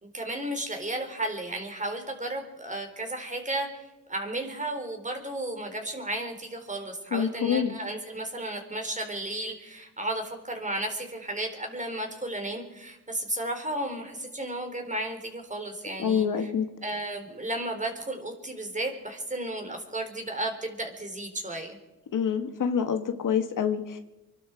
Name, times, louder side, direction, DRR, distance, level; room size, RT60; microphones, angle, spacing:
voice 1, 0.0-3.7 4.1-16.5 16.8-21.8, right 1 dB, 20° right, 4 dB, 3.8 m, -33 dB
voice 2, 7.1-7.8 16.0-16.7 22.1-24.0, left 7 dB, 55° left, 7 dB, 1.7 m, -26 dB
25.0 x 12.0 x 4.6 m, 1.0 s
cardioid pair, 70°, 37 cm